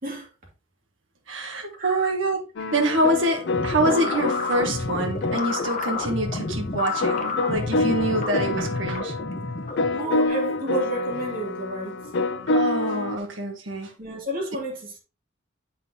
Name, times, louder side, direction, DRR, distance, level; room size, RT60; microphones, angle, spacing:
voice 1, 1.3-2.4 2.7-9.1 12.5-13.9, right 1 dB, 65° right, 1.3 m, -26 dB
voice 2, 1.8-2.1 9.9-12.0 14.0-15.0, right 2 dB, 45° right, 2.4 m, -31 dB
sound 1, 2.6-13.2, left 2 dB, 60° left, 0.6 m, -28 dB
sound 2, 3.5-10.3, left 3 dB, 40° left, 1.0 m, -30 dB
8.2 x 5.5 x 2.8 m
head